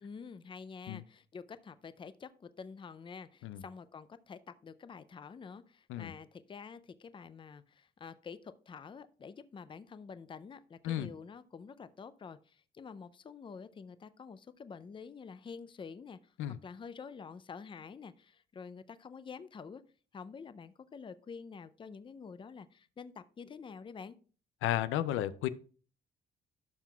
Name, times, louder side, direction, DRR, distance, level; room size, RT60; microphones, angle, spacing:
voice 1, 0.0-19.8 20.1-24.2, left 5 dB, 25° left, 14 dB, 0.4 m, -48 dB
voice 2, 24.6-25.5, left 13 dB, 85° left, 15 dB, 0.4 m, -33 dB
11.5 x 5.9 x 2.3 m, 0.39 s
cardioid pair, 90°, 20 cm